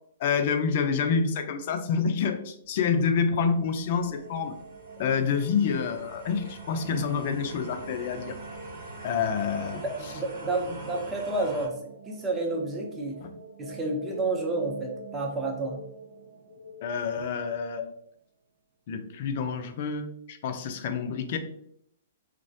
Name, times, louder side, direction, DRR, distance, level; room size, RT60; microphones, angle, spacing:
voice 1, 0.2-4.6 5.0-8.4 9.0-9.8 13.2-13.3 16.8-17.9 18.9-21.4, left 6 dB, 55° left, 7 dB, 0.4 m, -28 dB
sound 1, 2.9-11.7, right 2 dB, 65° right, 0.8 m, -45 dB
sound 2, 3.2-17.9, right 4 dB, 80° right, 0.4 m, -46 dB
voice 2, 10.0-13.2 13.6-15.8, right 2 dB, 15° right, 0 dB, 0.6 m, -30 dB
sound 3, 12.7-17.1, left 3 dB, 85° left, 0.7 m, -48 dB
2.3 x 2.1 x 2.6 m, 0.69 s
hypercardioid pair, 130°, 0 cm